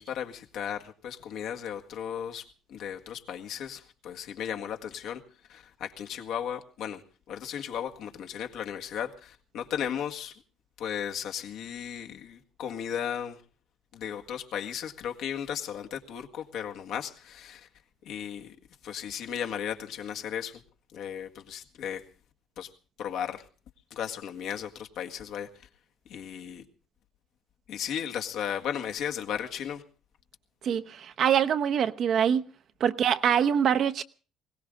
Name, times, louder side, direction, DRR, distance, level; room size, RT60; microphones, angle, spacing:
voice 1, 0.0-5.2 5.5-10.4 10.8-13.4 13.9-17.7 18.0-18.6 18.8-20.6 20.9-22.0 22.6-22.7 23.0-23.5 23.9-25.5 26.1-26.6 27.7-29.8, left 9 dB, 70° left, 1.8 m, -35 dB
voice 2, 30.6-32.4 32.8-34.0, right 8 dB, 55° right, 0.9 m, -24 dB
21.0 x 17.5 x 3.8 m
cardioid pair, 115°, 0 cm